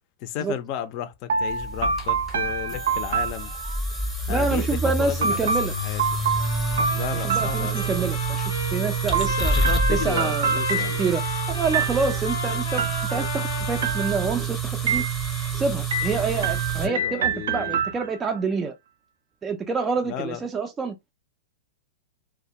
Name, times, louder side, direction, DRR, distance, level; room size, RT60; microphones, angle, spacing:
voice 1, 0.2-3.5 4.3-5.5 5.8-6.0 6.9-8.1 9.2-11.0 16.8-17.8 20.1-20.4, left 10 dB, 45° left, 0.4 m, -33 dB
sound 1, 1.3-4.0 5.2-8.2 9.1-11.3 11.7-12.3 12.8-13.5 13.8-14.5 14.9-15.5 15.9-18.4, right 5 dB, 80° right, 0.4 m, -27 dB
sound 2, 1.5-16.9, right 4 dB, ahead, 0.7 m, -28 dB
voice 2, 4.3-5.7 6.8-6.9 7.1-9.6 9.9-11.2 11.5-12.8 13.1-15.0 15.5-18.7 19.4-21.0, right 4 dB, 15° right, 0.3 m, -27 dB
Trumpet, 6.3-14.4, left 3 dB, 90° left, 0.7 m, -32 dB
2.2 x 2.1 x 2.7 m
hypercardioid pair, 135°, 0 cm